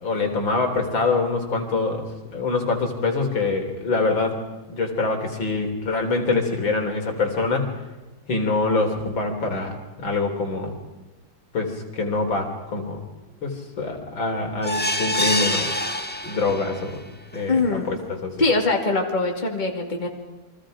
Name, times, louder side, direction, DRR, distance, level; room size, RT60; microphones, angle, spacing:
voice 1, 0.0-4.4 4.7-7.7 8.3-10.8 11.5-13.0 13.4-15.7 16.3-17.0 17.3-18.3, left 3 dB, 75° left, 3 dB, 4.1 m, -25 dB
sound 1, 14.6-16.9 17.3-17.4 17.8-17.9, left 1 dB, 5° left, 1.3 m, -25 dB
voice 2, 17.5-17.9 18.4-20.1, left 3 dB, 20° left, 2 dB, 2.7 m, -22 dB
29.5 x 24.0 x 5.1 m, 1.1 s
omnidirectional pair, 2.2 m